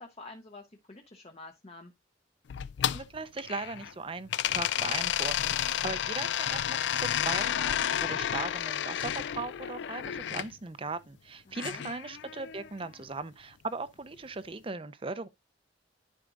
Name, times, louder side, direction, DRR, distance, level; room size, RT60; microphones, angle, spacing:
voice 1, 0.0-1.9 11.5-11.8, left 2 dB, 30° left, 0.8 m, -48 dB
sound 1, 2.5-3.9 4.3-10.5 11.6-12.7, left 10 dB, 65° left, 0.3 m, -31 dB
voice 2, 2.9-15.3, right 3 dB, 30° right, 0.6 m, -38 dB
11.0 x 5.0 x 2.5 m
head